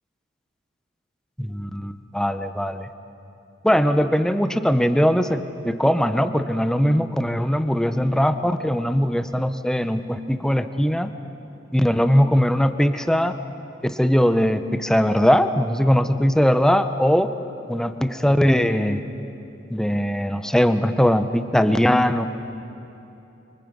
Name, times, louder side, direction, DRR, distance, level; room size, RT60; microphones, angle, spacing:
voice 1, 1.4-2.9 3.6-11.1 11.7-13.4 13.8-17.3 17.7-19.0 19.7-22.3, equal, 5° left, 9 dB, 0.7 m, -20 dB
29.5 x 24.5 x 5.2 m, 3.0 s
head